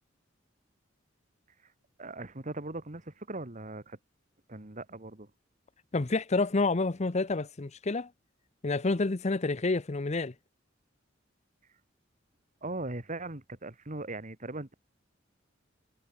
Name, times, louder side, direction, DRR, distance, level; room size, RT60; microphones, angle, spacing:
voice 1, 2.0-4.0 4.5-5.3 12.6-14.7, right 2 dB, 40° right, 2.2 m, -39 dB
voice 2, 5.9-8.1 8.6-10.3, left 3 dB, 35° left, 0.7 m, -28 dB
head